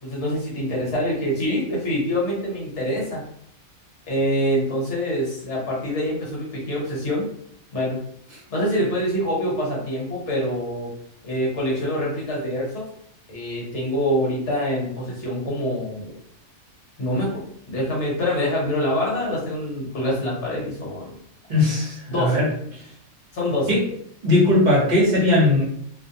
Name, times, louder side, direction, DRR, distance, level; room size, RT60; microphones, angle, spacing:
voice 1, 0.0-3.2 4.1-7.3 7.7-8.0 8.5-10.9 11.2-12.9 13.3-16.1 17.0-21.2 22.1-22.4 23.3-23.8, equal, 55° left, -4 dB, 1.2 m, -25 dB
voice 2, 21.5-22.5 23.7-23.8 24.2-25.6, left 1 dB, 35° right, -5 dB, 0.8 m, -18 dB
2.5 x 2.1 x 2.7 m, 0.67 s
omnidirectional pair, 1.5 m